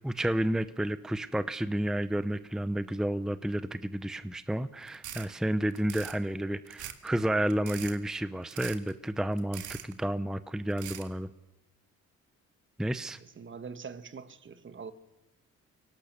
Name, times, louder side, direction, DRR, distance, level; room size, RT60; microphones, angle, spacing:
voice 1, 0.0-11.3 12.8-13.2, right 1 dB, ahead, 0.7 m, -31 dB
sound 1, 4.9-5.3 5.7-6.2 6.7-7.1 7.5-8.0 8.5-8.9 9.4-9.9 10.7-11.1, right 11 dB, 80° right, 1.9 m, -42 dB
voice 2, 13.2-14.9, right 5 dB, 40° right, 1.5 m, -43 dB
23.0 x 18.5 x 6.8 m
cardioid pair, 90°, 30 cm